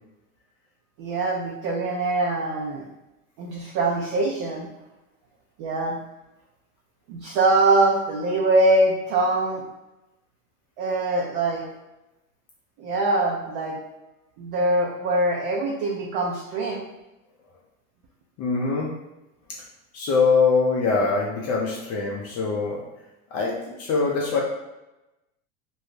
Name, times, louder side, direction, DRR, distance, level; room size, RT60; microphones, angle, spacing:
voice 1, 1.0-2.9 3.4-4.7 5.6-6.0 7.1-9.6 10.8-11.7 12.8-13.8 14.4-16.8, right 2 dB, 55° right, -2 dB, 0.6 m, -23 dB
voice 2, 18.4-18.9 19.9-22.8 23.3-24.4, left 4 dB, 40° left, -2 dB, 0.5 m, -23 dB
2.6 x 2.1 x 3.2 m, 0.97 s
hypercardioid pair, 105°, 40 cm